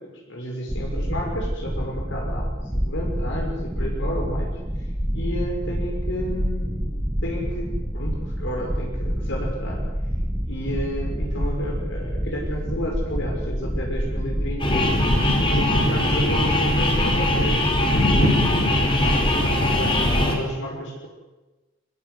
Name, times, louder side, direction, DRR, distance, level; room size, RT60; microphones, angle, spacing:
voice 1, 0.0-4.6 5.1-9.8 10.4-14.9 15.5-18.5 18.9-21.1, equal, 60° left, 0 dB, 6.2 m, -32 dB
sound 1, 0.7-20.3, equal, 10° right, 1.2 m, -28 dB
sound 2, 14.6-20.4, left 1 dB, 25° left, 4.7 m, -21 dB
24.0 x 20.5 x 8.2 m, 1.1 s
head